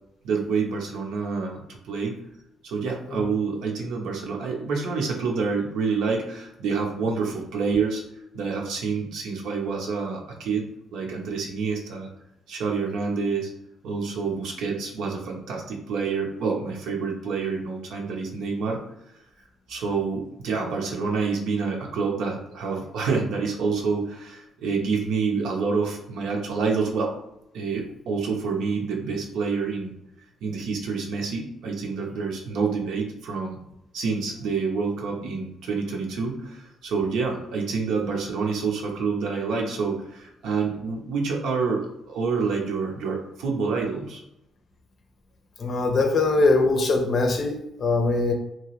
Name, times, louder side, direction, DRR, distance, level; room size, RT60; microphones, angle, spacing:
voice 1, 0.2-2.2 2.6-8.0 8.3-12.1 12.5-13.5 13.8-18.8 19.7-27.1 27.5-29.9 30.4-33.6 33.9-44.2, right 5 dB, 80° right, 0 dB, 0.7 m, -27 dB
voice 2, 45.6-48.3, left 3 dB, 55° left, 4 dB, 0.6 m, -22 dB
2.9 x 2.3 x 3.0 m, 0.81 s
cardioid pair, 90°, 0 cm